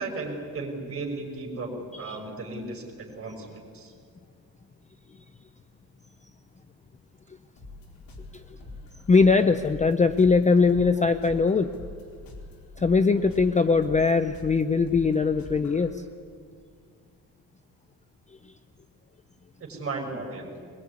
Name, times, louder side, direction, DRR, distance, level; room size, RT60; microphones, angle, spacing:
voice 1, 0.0-1.7 2.0-3.9 19.6-20.5, right 3 dB, 35° right, 1 dB, 6.1 m, -35 dB
sound 1, 7.6-15.9, left 2 dB, 60° left, 4.1 m, -44 dB
voice 2, 9.1-11.7 12.8-16.0, left 4 dB, 20° left, 10 dB, 0.6 m, -21 dB
22.5 x 21.5 x 9.7 m, 2.1 s
cardioid pair, 155°, 39 cm